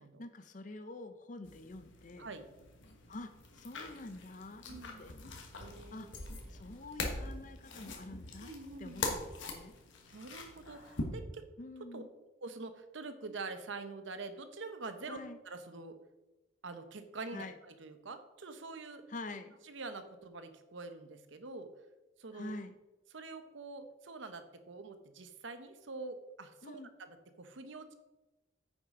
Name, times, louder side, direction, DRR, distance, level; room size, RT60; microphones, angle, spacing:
voice 1, 0.0-2.3 3.1-4.7 5.0-5.2 5.9-6.1 6.5-8.5 8.8-9.7 11.6-12.1 15.1-15.4 17.3-17.6 19.1-19.5 22.3-22.7 26.6-26.9, left 2 dB, 40° left, 9 dB, 0.6 m, -46 dB
sound 1, 1.4-11.0, left 3 dB, 70° left, 1.4 m, -43 dB
voice 2, 4.7-5.0 5.6-6.1 8.4-9.1 10.1-11.5 11.9-12.0 12.4-15.2 15.4-16.0 16.6-19.0 19.6-21.7 22.2-22.5 23.1-27.9, right 3 dB, 70° right, 9 dB, 0.8 m, -46 dB
9.4 x 6.4 x 3.7 m, 1.1 s
head